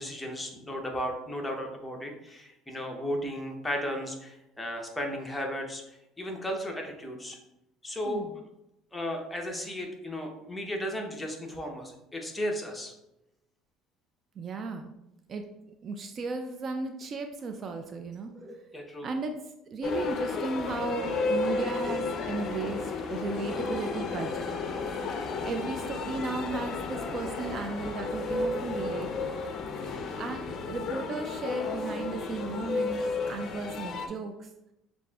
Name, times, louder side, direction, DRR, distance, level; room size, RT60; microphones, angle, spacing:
voice 1, 0.0-7.4 7.8-8.3 8.9-12.9 18.4-19.1 25.2-25.5 29.7-30.1, equal, 10° left, 1 dB, 0.8 m, -35 dB
voice 2, 14.4-14.9 15.3-15.5 15.8-18.3 19.0-19.4 19.7-24.5 25.4-29.4 30.2-34.5, right 3 dB, 40° right, 5 dB, 0.3 m, -35 dB
sound 1, 19.8-34.1, left 3 dB, 50° left, 0.5 m, -33 dB
6.4 x 2.5 x 2.3 m, 0.89 s
supercardioid pair, 100°, 0 cm